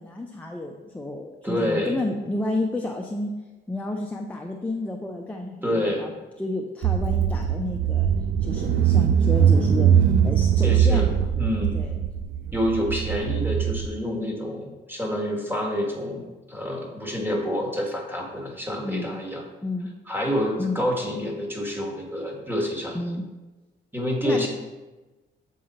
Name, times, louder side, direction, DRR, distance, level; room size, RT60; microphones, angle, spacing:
voice 1, 0.0-3.3 3.7-6.1 6.4-8.1 8.4-9.9 10.2-11.4 11.7-12.0 18.8-19.2 19.6-19.9 20.6-20.8 22.9-23.3 24.2-24.5, left 2 dB, 5° left, 1 dB, 0.6 m, -31 dB
voice 2, 1.4-2.0 5.6-6.0 10.6-11.1 11.3-11.8 12.5-19.4 20.1-23.0 23.9-24.5, equal, 10° right, -1 dB, 1.7 m, -27 dB
Car / Engine, 6.8-13.9, right 8 dB, 60° right, 0.4 m, -21 dB
7.8 x 3.7 x 4.1 m, 1.1 s
cardioid pair, 90°, 20 cm